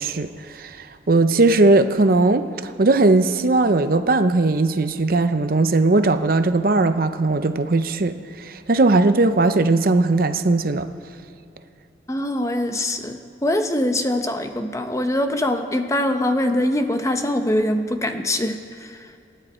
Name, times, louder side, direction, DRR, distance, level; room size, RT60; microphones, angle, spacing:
voice 1, 0.0-10.9, right 2 dB, 55° right, 9 dB, 0.7 m, -18 dB
voice 2, 12.1-19.0, left 1 dB, 20° left, 6 dB, 0.8 m, -23 dB
27.0 x 10.5 x 4.4 m, 2.7 s
head